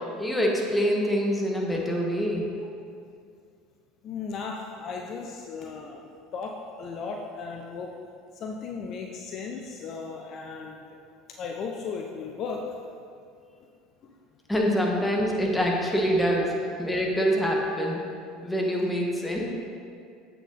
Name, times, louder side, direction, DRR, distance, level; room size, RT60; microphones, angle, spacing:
voice 1, 0.2-2.5 14.5-16.5 16.8-18.0 18.4-19.5, equal, 10° left, -2 dB, 1.7 m, -25 dB
voice 2, 4.0-6.5 6.8-7.9 8.3-10.9 11.4-12.6 14.0-14.1 16.4-16.5, left 5 dB, 50° left, 1 dB, 0.7 m, -36 dB
7.9 x 6.7 x 4.2 m, 2.3 s
hypercardioid pair, 70°, 0 cm